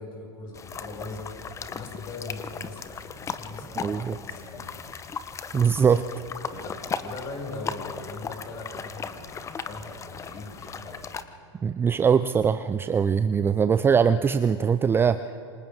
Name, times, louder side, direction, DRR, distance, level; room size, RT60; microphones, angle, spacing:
voice 1, 0.0-4.8 6.4-11.0, left 2 dB, 35° left, -2 dB, 6.4 m, -40 dB
sound 1, 0.5-11.2, left 6 dB, 20° left, 1.0 m, -37 dB
voice 2, 3.8-4.2 5.5-6.0 11.6-15.2, right 6 dB, 15° right, 12 dB, 0.5 m, -22 dB
28.5 x 25.5 x 3.6 m, 2.6 s
hypercardioid pair, 95°, 15 cm